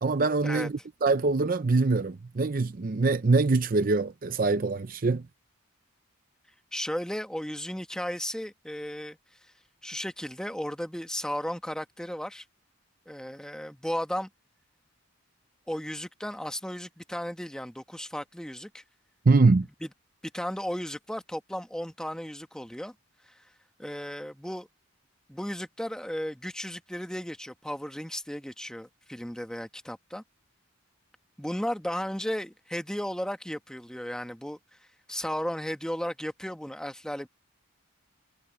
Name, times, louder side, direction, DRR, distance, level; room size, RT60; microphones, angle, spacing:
voice 1, 0.0-5.2 19.3-19.7, right 3 dB, 40° right, 0.5 m, -24 dB
voice 2, 6.7-9.5 9.8-12.4 13.1-14.3 15.7-18.8 19.8-19.9 20.3-22.9 23.3-23.5 23.8-24.7 25.3-30.2 31.4-34.6 35.1-37.3, equal, 5° left, 1.2 m, -35 dB
head